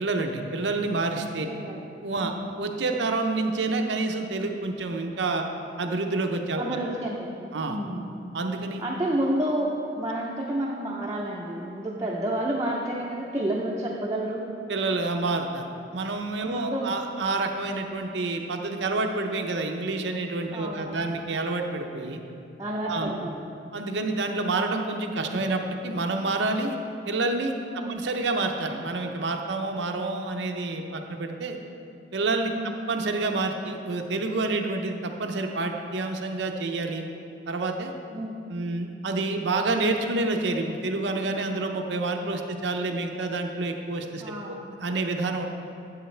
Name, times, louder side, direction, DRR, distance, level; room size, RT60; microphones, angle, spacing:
voice 1, 0.0-1.5 2.0-5.4 5.8-6.6 7.5-7.8 8.3-8.8 14.7-22.2 22.8-23.1 23.7-26.8 27.1-27.5 27.9-31.6 32.1-32.5 32.9-37.0 37.5-37.9 38.5-44.4 44.7-45.5, right 3 dB, 75° right, 4 dB, 0.6 m, -28 dB
voice 2, 1.5-1.8 2.2-2.4 6.6-8.1 8.8-14.4 16.4-16.9 20.5-21.1 22.6-23.4 27.7-28.0 32.5-32.7 38.1-38.4 44.2-44.6, right 1 dB, 20° right, -4 dB, 0.6 m, -30 dB
9.3 x 7.9 x 3.3 m, 2.6 s
head